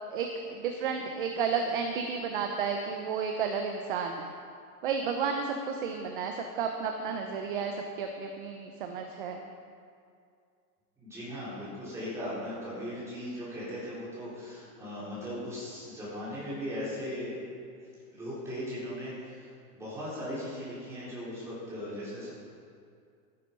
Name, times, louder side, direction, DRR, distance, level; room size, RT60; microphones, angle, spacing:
voice 1, 0.1-4.3 4.8-9.4, right 6 dB, 35° right, 4 dB, 0.8 m, -32 dB
voice 2, 11.0-17.4 18.1-19.5 19.7-22.3, equal, 5° right, -10 dB, 4.0 m, -38 dB
13.5 x 10.0 x 5.4 m, 2.3 s
supercardioid pair, 170°, 48 cm